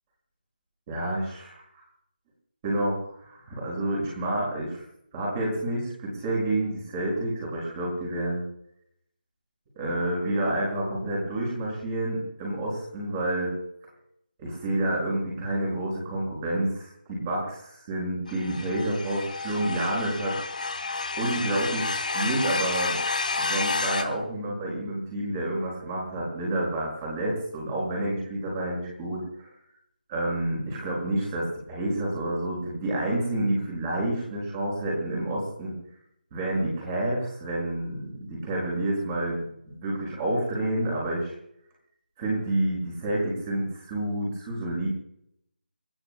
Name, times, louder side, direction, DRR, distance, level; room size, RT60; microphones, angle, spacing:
voice 1, 0.9-1.8 2.6-4.8 5.1-8.4 9.8-13.5 14.4-20.4 21.2-23.0 23.4-29.5 30.1-35.7 36.3-41.3 42.2-44.9, right 1 dB, 15° right, -3 dB, 5.8 m, -29 dB
sound 1, 18.3-24.0, left 3 dB, 55° left, 3.1 m, -30 dB
30.0 x 14.0 x 2.3 m, 0.74 s
figure-of-eight pair, 175°, 5 cm